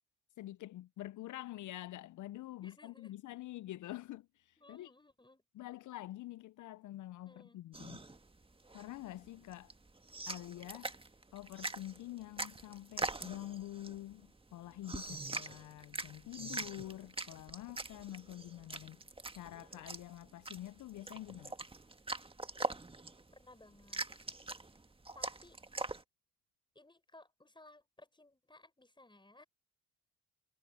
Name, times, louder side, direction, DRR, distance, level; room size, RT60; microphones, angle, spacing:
voice 1, 0.4-4.9 5.5-8.0 8.7-9.7 10.3-10.9 11.3-19.0 19.3-21.5, left 15 dB, 60° left, 0.7 m, -47 dB
voice 2, 2.6-3.1 4.6-5.4 7.3-7.6 23.3-24.1 25.1-25.6 26.7-29.4, left 2 dB, 15° left, 5.5 m, -60 dB
sound 1, 7.7-26.0, right 2 dB, 15° right, 1.8 m, -43 dB
hypercardioid pair, 55°, 34 cm